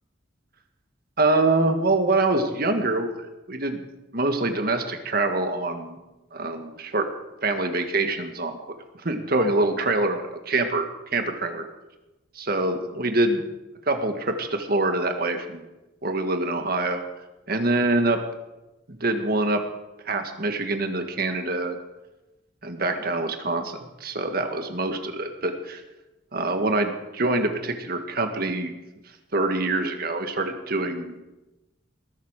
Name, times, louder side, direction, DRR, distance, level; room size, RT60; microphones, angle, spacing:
voice 1, 1.2-3.8 4.1-6.0 6.3-7.1 7.4-8.6 9.0-10.9 11.1-11.6 12.4-13.4 13.9-15.6 16.0-17.0 17.5-18.2 18.9-19.6 20.1-21.8 22.6-25.8 26.3-28.7 29.3-31.2, right 2 dB, 50° right, 6 dB, 1.8 m, -25 dB
20.0 x 8.2 x 6.6 m, 1.0 s
head